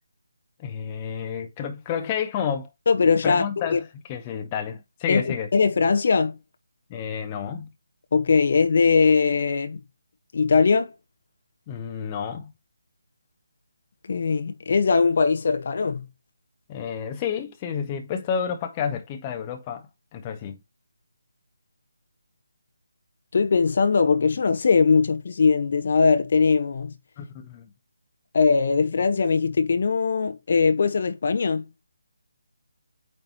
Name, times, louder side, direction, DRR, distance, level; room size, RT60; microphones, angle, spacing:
voice 1, 0.6-2.7 3.2-5.5 6.9-7.7 11.7-12.5 16.7-20.6 27.2-27.7, left 7 dB, 20° left, 0.8 m, -30 dB
voice 2, 2.9-3.8 5.1-6.3 8.1-9.8 10.3-10.9 14.1-16.1 23.3-26.9 28.3-31.6, left 5 dB, 45° left, 0.8 m, -20 dB
8.8 x 3.2 x 4.3 m
figure-of-eight pair, 150°, 0 cm